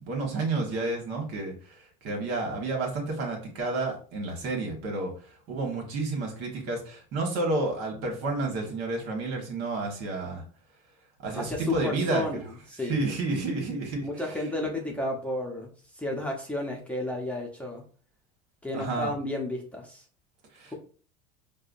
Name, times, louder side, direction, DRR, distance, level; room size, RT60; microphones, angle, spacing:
voice 1, 0.0-5.1 5.5-10.4 11.2-12.2 12.8-14.1 18.7-19.1 20.5-20.7, right 3 dB, 60° right, 1 dB, 1.5 m, -30 dB
voice 2, 11.3-12.4 12.7-13.1 14.0-17.8 18.6-20.0, left 2 dB, 5° left, -1 dB, 0.8 m, -32 dB
4.8 x 2.2 x 2.6 m, 0.42 s
supercardioid pair, 100°, 19 cm